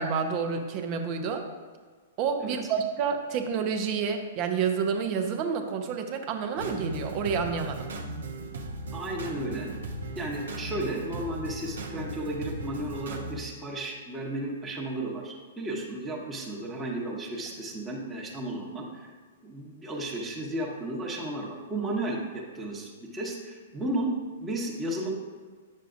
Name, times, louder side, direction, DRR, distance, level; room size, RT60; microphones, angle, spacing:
voice 1, 0.0-1.5 2.2-7.9, right 6 dB, 40° right, 5 dB, 0.9 m, -29 dB
sound 1, 6.6-13.4, right 2 dB, 75° right, 0.8 m, -37 dB
voice 2, 8.9-9.7 10.1-19.1 19.4-24.1 24.4-25.1, right 1 dB, 15° right, -4 dB, 1.2 m, -34 dB
9.2 x 6.5 x 2.6 m, 1.5 s
hypercardioid pair, 120°, 0 cm